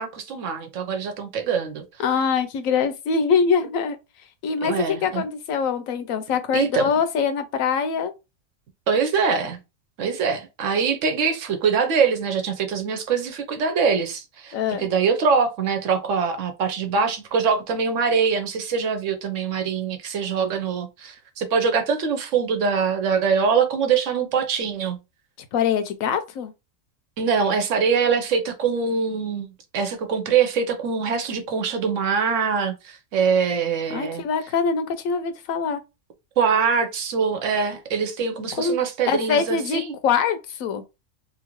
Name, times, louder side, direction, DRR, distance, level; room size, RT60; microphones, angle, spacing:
voice 1, 0.0-1.8 4.6-5.2 6.5-6.9 8.9-9.6 10.0-25.0 27.2-29.5 29.7-34.2 36.4-39.9, right 6 dB, 70° right, 1.0 m, -23 dB
voice 2, 2.0-4.0 4.4-8.1 14.5-14.9 25.5-26.5 33.9-35.8 38.5-38.8 39.1-40.8, left 6 dB, 80° left, 1.0 m, -23 dB
2.8 x 2.5 x 2.9 m
omnidirectional pair, 1.4 m